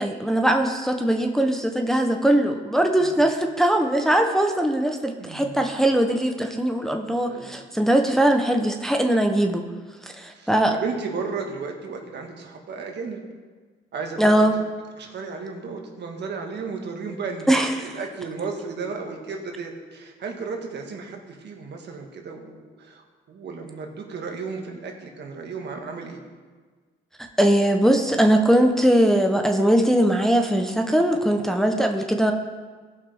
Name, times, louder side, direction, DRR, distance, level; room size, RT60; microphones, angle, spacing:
voice 1, 0.0-9.6 10.0-10.8 14.2-14.6 17.5-17.9 27.4-32.3, right 1 dB, ahead, 3 dB, 0.8 m, -20 dB
voice 2, 5.2-5.7 7.2-7.6 10.3-13.2 13.9-14.3 15.0-17.5 17.8-26.2, right 4 dB, 60° right, 2 dB, 1.6 m, -34 dB
17.0 x 5.8 x 3.5 m, 1.4 s
cardioid pair, 90°, 20 cm